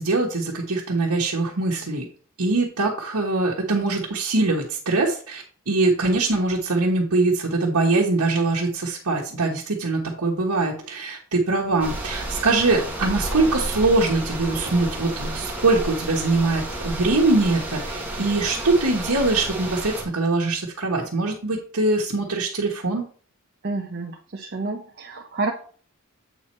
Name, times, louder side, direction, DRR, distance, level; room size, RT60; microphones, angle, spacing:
voice 1, 0.0-2.1 2.4-23.1, right 3 dB, 90° right, -4 dB, 1.3 m, -22 dB
sound 1, 11.8-20.0, right 1 dB, 5° right, 1.6 m, -31 dB
voice 2, 23.6-25.5, right 3 dB, 45° right, 2 dB, 0.7 m, -29 dB
8.0 x 4.6 x 4.3 m, 0.44 s
head